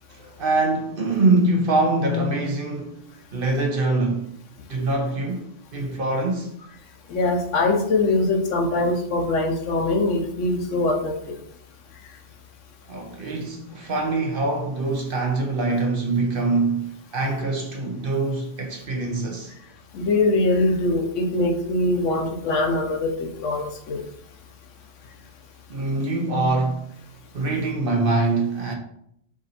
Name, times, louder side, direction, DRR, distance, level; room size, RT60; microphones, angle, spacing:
voice 1, 0.1-3.1 3.3-4.3 4.7-6.5 12.9-19.5 25.7-26.8 27.3-28.7, right 2 dB, 50° right, 0.8 m, -24 dB
voice 2, 7.1-11.4 19.9-24.0, left 2 dB, 75° left, 1.0 m, -22 dB
4.8 x 2.6 x 4.1 m
omnidirectional pair, 1.3 m